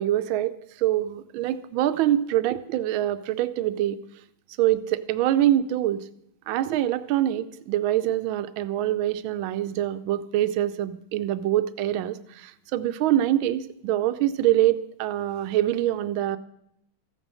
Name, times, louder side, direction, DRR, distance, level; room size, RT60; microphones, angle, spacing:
voice 1, 0.0-4.0 4.6-6.0 6.5-16.4, right 13 dB, 80° right, 12 dB, 1.4 m, -25 dB
14.5 x 9.0 x 6.3 m, 0.75 s
omnidirectional pair, 2.2 m